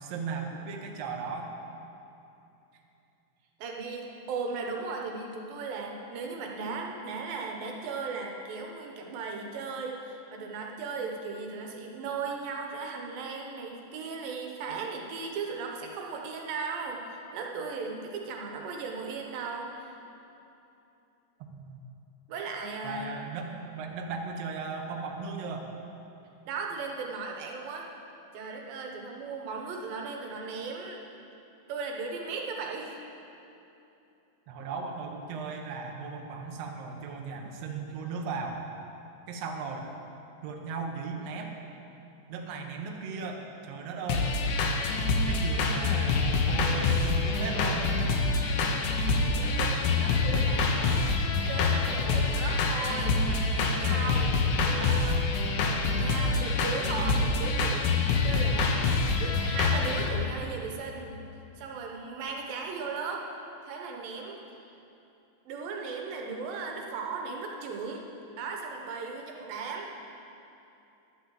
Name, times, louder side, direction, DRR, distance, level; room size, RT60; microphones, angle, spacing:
voice 1, 0.0-1.5 21.4-21.8 22.8-25.7 34.5-38.7 39.3-39.9 40.4-41.6 42.3-44.3 45.3-47.9, right 4 dB, 65° right, 2 dB, 1.7 m, -37 dB
voice 2, 3.6-19.9 22.3-23.1 26.5-27.9 28.3-31.0 31.7-33.0 49.4-51.1 51.4-55.2 55.9-57.9 58.2-61.2 61.6-63.3 63.6-64.4 65.5-68.0 68.4-69.9, right 4 dB, 85° right, 1 dB, 2.9 m, -37 dB
sound 1, 44.1-60.1, left 3 dB, 70° left, 2.2 m, -26 dB
11.0 x 7.7 x 7.5 m, 2.8 s
omnidirectional pair, 4.0 m